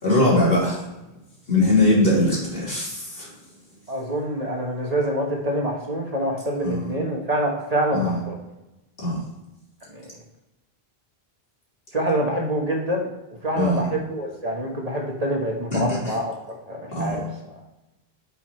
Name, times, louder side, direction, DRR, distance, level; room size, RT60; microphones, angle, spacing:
voice 1, 0.0-0.8 1.5-3.3 6.6-6.9 7.9-8.2 9.0-9.1 13.6-13.8 15.7-15.8 16.9-17.2, left 2 dB, 65° left, -6 dB, 3.3 m, -21 dB
voice 2, 3.9-8.3 9.9-10.1 11.9-13.1 13.4-16.3 16.7-17.2, right 1 dB, 40° right, -1 dB, 1.5 m, -26 dB
8.9 x 5.7 x 3.2 m, 0.98 s
omnidirectional pair, 1.0 m